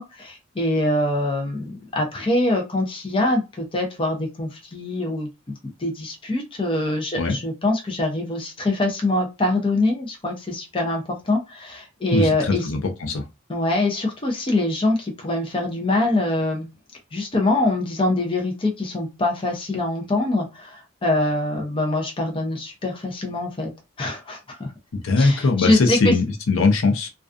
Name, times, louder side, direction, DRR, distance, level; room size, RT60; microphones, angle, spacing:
voice 1, 0.0-5.3 5.8-12.7 13.5-16.7 17.1-23.7 24.0-24.7 25.2-26.1, left 2 dB, 25° left, 0.5 m, -24 dB
voice 2, 12.1-13.2 24.9-27.1, left 3 dB, 85° left, 0.5 m, -21 dB
2.4 x 2.3 x 2.4 m
head